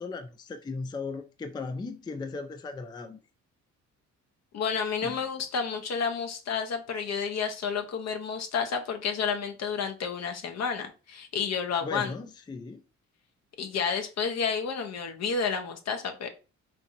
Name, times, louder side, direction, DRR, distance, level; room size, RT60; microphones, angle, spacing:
voice 1, 0.0-3.2 5.0-5.2 11.8-12.8, left 4 dB, 15° left, 0.4 m, -37 dB
voice 2, 4.5-12.1 13.6-16.3, left 6 dB, 60° left, 0.8 m, -30 dB
4.6 x 2.4 x 2.6 m
cardioid pair, 90°, 30 cm